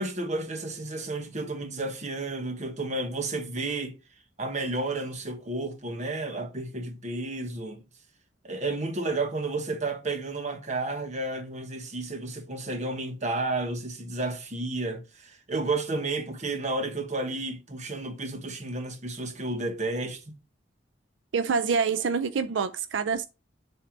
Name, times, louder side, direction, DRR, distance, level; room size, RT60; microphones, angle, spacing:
voice 1, 0.0-4.0 4.4-7.8 8.4-20.3, right 2 dB, 40° right, 1.2 m, -32 dB
voice 2, 21.3-23.3, right 5 dB, 85° right, 0.4 m, -26 dB
7.5 x 2.8 x 5.2 m
head